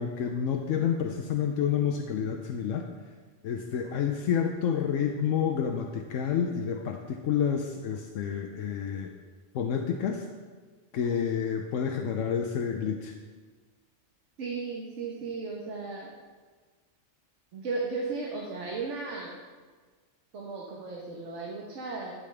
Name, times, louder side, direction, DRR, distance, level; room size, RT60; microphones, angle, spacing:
voice 1, 0.0-2.9 3.4-9.1 9.5-10.2 10.9-13.1, left 7 dB, 80° left, 3 dB, 1.0 m, -29 dB
voice 2, 14.4-16.1 17.5-19.4 20.3-22.1, right 4 dB, 70° right, -1 dB, 1.4 m, -35 dB
12.0 x 7.8 x 3.3 m, 1.4 s
omnidirectional pair, 1.3 m